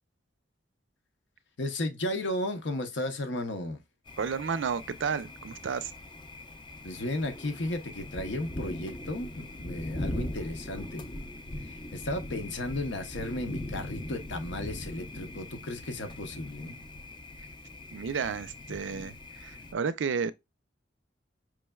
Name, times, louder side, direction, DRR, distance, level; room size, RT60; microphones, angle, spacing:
voice 1, 1.6-3.8 6.8-11.1 11.6-16.8 18.9-19.2, left 1 dB, 75° left, 0.8 m, -34 dB
Thunder, 4.1-19.7, left 1 dB, 25° left, 0.5 m, -41 dB
voice 2, 4.2-5.9 17.9-19.1 19.4-20.3, right 6 dB, 80° right, 0.4 m, -31 dB
4.8 x 3.2 x 2.3 m
head